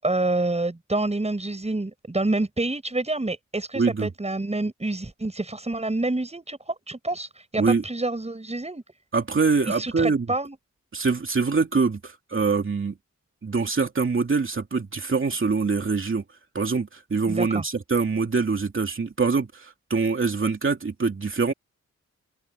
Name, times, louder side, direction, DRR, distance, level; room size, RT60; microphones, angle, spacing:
voice 1, 0.0-8.8 9.7-10.6 17.3-17.6, right 2 dB, 20° right, 7.5 m, -28 dB
voice 2, 3.7-4.1 7.6-7.8 9.1-10.3 10.9-12.9 13.4-16.2 16.5-21.5, right 4 dB, 45° right, 2.7 m, -24 dB
open air
wide cardioid pair, 115°, 29 cm